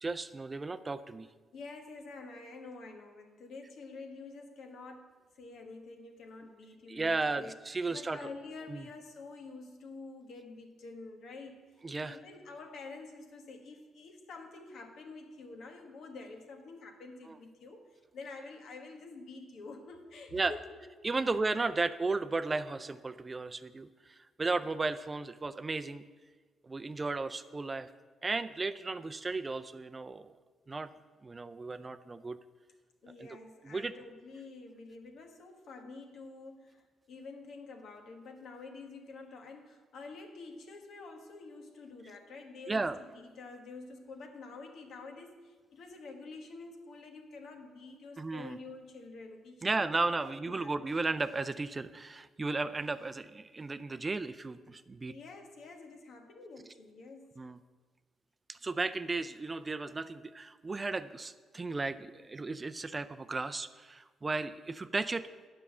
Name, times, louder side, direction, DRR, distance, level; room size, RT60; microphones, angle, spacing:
voice 1, 0.0-1.3 6.9-8.3 8.7-8.9 11.8-12.2 17.3-17.4 20.3-20.5 21.0-26.0 26.6-27.9 28.2-30.3 30.7-30.9 31.2-32.4 33.2-33.3 33.6-33.9 42.7-43.0 48.2-48.6 49.6-55.1 57.4-57.6 58.5-65.3, right 3 dB, 25° right, 11 dB, 0.4 m, -34 dB
voice 2, 1.5-7.6 7.9-11.6 12.0-20.9 33.0-49.9 50.2-50.7 55.1-57.3, left 3 dB, 70° left, 5 dB, 1.3 m, -48 dB
9.3 x 5.5 x 7.2 m, 1.4 s
cardioid pair, 90°, 0 cm